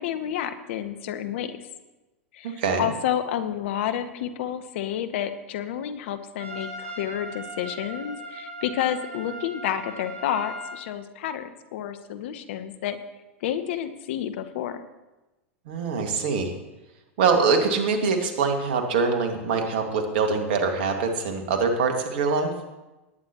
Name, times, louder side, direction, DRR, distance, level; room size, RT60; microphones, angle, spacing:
voice 1, 0.0-1.6 2.3-13.0 13.4-14.8, left 10 dB, 60° left, 10 dB, 1.0 m, -30 dB
voice 2, 2.4-2.9 15.7-16.5 17.2-22.5, right 4 dB, 60° right, 4 dB, 2.0 m, -24 dB
Trumpet, 6.4-10.8, right 1 dB, 85° right, 2.2 m, -38 dB
19.0 x 9.7 x 3.0 m, 1.1 s
hypercardioid pair, 95°, 7 cm